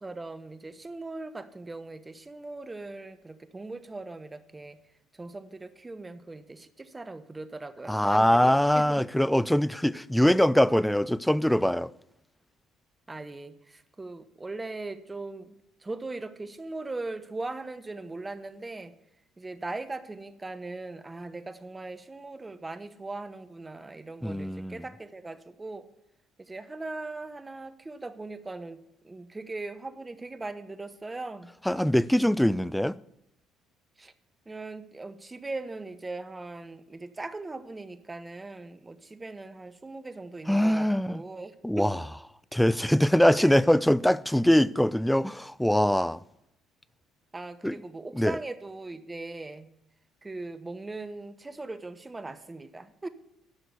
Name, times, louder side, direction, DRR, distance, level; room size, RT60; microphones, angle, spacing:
voice 1, 0.0-4.8 5.1-9.0 13.1-15.5 15.8-18.9 19.4-25.9 26.4-31.5 34.0-34.1 34.5-41.9 43.4-43.5 47.3-49.7 50.2-53.1, right 2 dB, 20° right, 0.9 m, -39 dB
voice 2, 7.9-11.9 24.2-24.8 31.7-33.0 40.5-41.2 41.6-42.0 42.5-46.2 47.6-47.8 48.1-48.4, equal, 5° left, 0.4 m, -23 dB
11.5 x 6.0 x 6.7 m
hypercardioid pair, 60°, 0 cm